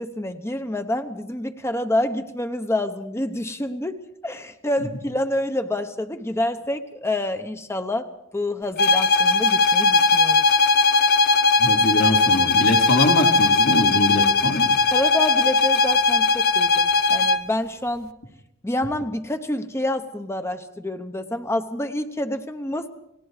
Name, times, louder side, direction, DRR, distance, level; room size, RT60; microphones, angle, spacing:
voice 1, 0.0-8.1 8.3-10.5 14.9-18.1 18.6-22.9, left 1 dB, 15° left, 8 dB, 0.9 m, -27 dB
sound 1, 8.8-17.5, left 4 dB, 50° left, 0.9 m, -18 dB
voice 2, 11.6-14.8, left 1 dB, 75° left, 2 dB, 3.2 m, -24 dB
29.0 x 18.5 x 4.9 m, 0.84 s
head